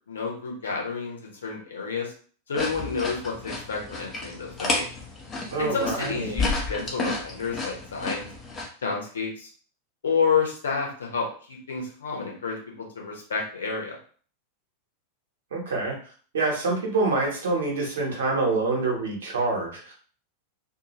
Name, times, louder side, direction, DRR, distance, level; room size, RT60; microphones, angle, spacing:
voice 1, 0.1-2.1 2.5-4.9 5.6-8.3 8.8-9.5 10.0-14.0, left 5 dB, 70° left, -1 dB, 0.9 m, -29 dB
sound 1, 2.5-8.7, left 3 dB, 25° left, 0.8 m, -31 dB
voice 2, 5.5-6.4 15.5-15.9 16.3-19.9, right 3 dB, 65° right, -2 dB, 1.2 m, -26 dB
2.7 x 2.5 x 3.0 m, 0.44 s
figure-of-eight pair, 90°, 0 cm